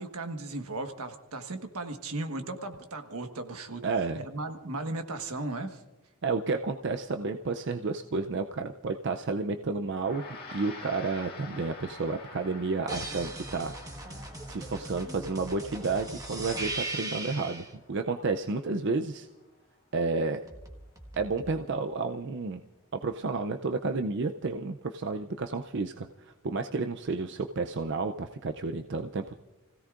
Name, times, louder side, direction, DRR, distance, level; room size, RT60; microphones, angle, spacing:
voice 1, 0.0-3.9 4.2-5.8, right 2 dB, 80° right, 6 dB, 1.4 m, -36 dB
voice 2, 3.8-4.2 6.2-10.2 10.5-13.7 14.0-14.2 14.5-19.3 19.9-20.4 21.2-22.6 22.9-29.4, right 3 dB, 50° right, 6 dB, 0.5 m, -31 dB
Gong, 9.9-19.5, left 3 dB, 45° left, 1.8 m, -49 dB
sound 1, 12.9-17.7 20.5-21.6, right 2 dB, 15° right, 1.4 m, -39 dB
29.5 x 16.5 x 2.5 m, 1.0 s
head